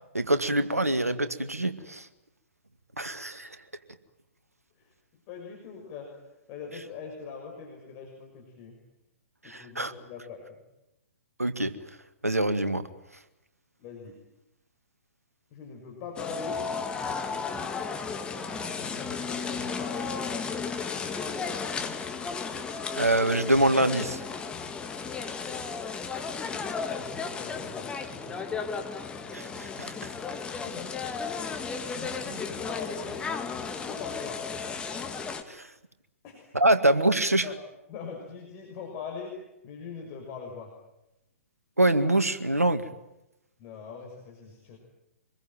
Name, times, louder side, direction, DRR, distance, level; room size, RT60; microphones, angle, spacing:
voice 1, 0.1-2.1 3.0-3.5 9.4-9.9 11.4-11.7 12.2-12.8 23.0-24.2 29.3-29.9 35.5-35.7 36.5-37.4 41.8-42.9, right 1 dB, 85° right, 10 dB, 2.0 m, -25 dB
voice 2, 5.3-6.2 6.5-8.8 9.4-10.4 13.8-14.2 15.5-16.6 18.7-20.1 26.2-26.6 26.9-28.3 30.6-31.4 31.8-33.3 33.6-34.4 36.2-36.5 37.4-37.5 37.9-40.7 43.6-44.8, left 5 dB, 35° left, 0 dB, 6.2 m, -42 dB
sound 1, 16.2-35.4, left 5 dB, 10° left, 2.2 m, -34 dB
26.0 x 21.5 x 9.2 m, 0.89 s
figure-of-eight pair, 120°, 8 cm